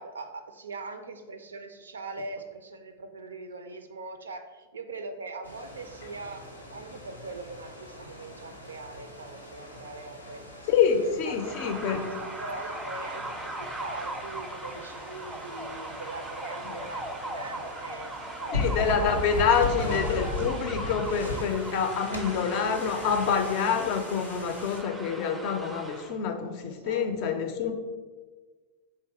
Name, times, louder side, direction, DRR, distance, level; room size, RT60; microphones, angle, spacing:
voice 1, 0.0-6.4 6.7-10.7 11.0-12.1 12.4-18.1 18.4-18.9 19.2-19.9 26.7-27.4, right 3 dB, 70° right, 8 dB, 0.4 m, -41 dB
sound 1, 5.4-24.8, left 1 dB, 85° left, 0.6 m, -38 dB
voice 2, 10.7-12.1 16.6-16.7 18.5-27.7, left 6 dB, 45° left, 6 dB, 0.4 m, -27 dB
sound 2, 11.3-26.2, right 1 dB, 10° right, 0.4 m, -39 dB
3.4 x 2.8 x 4.5 m, 1.4 s
figure-of-eight pair, 90°, 0 cm